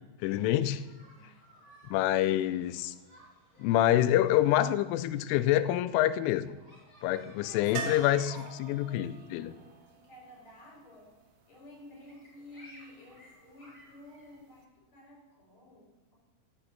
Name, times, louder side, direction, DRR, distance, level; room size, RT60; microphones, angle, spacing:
voice 1, 0.2-0.8 1.9-2.9 3.6-6.6 7.0-8.3 8.6-9.5, left 13 dB, 90° left, 13 dB, 3.2 m, -26 dB
sound 1, 0.6-14.3, equal, 10° left, 6.0 m, -58 dB
voice 2, 7.4-11.1 11.5-16.2, left 1 dB, 35° left, -3 dB, 6.5 m, -52 dB
sound 2, 7.8-11.6 14.3-14.4 14.6-14.7, right 6 dB, 75° right, 2.2 m, -43 dB
12.0 x 7.8 x 8.8 m, 1.1 s
omnidirectional pair, 5.5 m